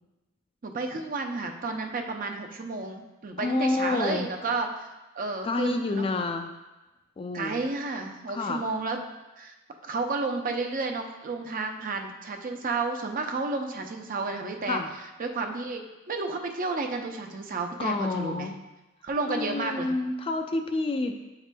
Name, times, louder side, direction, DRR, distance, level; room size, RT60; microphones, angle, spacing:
voice 1, 0.6-4.9 5.1-6.1 7.3-9.0 9.4-9.5 9.8-14.8 15.2-18.5 19.0-19.9, right 3 dB, 45° right, 4 dB, 0.5 m, -31 dB
voice 2, 3.4-4.3 5.4-6.5 7.2-7.6 8.3-8.6 14.7-14.9 17.8-18.6 19.3-21.2, left 3 dB, 30° left, 6 dB, 0.3 m, -29 dB
8.8 x 4.8 x 2.2 m, 1.1 s
head